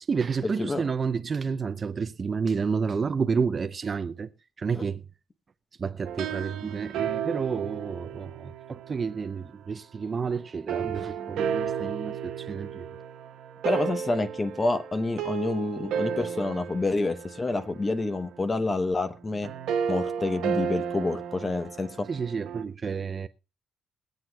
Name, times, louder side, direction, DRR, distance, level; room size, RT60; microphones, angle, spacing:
voice 1, 0.1-4.3 4.6-5.0 5.8-12.9 22.1-23.3, right 5 dB, 40° right, 0.5 m, -30 dB
sound 1, 6.0-9.4 10.7-22.6, right 8 dB, 85° right, 1.1 m, -33 dB
voice 2, 13.6-19.5 19.9-22.1, left 2 dB, 25° left, 0.8 m, -28 dB
22.0 x 7.8 x 2.3 m
cardioid pair, 90°, 0 cm